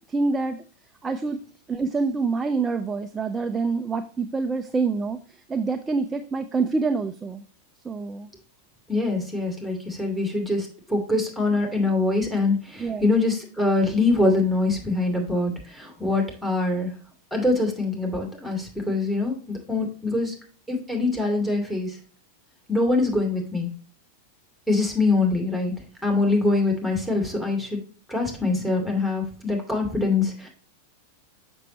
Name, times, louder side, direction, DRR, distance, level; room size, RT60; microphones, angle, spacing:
voice 1, 0.1-0.6 1.0-1.4 1.7-7.4 7.8-8.3 12.8-13.1, right 4 dB, 15° right, 8 dB, 0.5 m, -26 dB
voice 2, 8.9-16.9 17.3-20.4 20.7-22.0 22.7-23.7 24.7-25.7 26.0-27.8 28.1-30.5, left 2 dB, ahead, 1 dB, 2.4 m, -24 dB
6.7 x 6.2 x 2.9 m, 0.41 s
figure-of-eight pair, 90°, 0 cm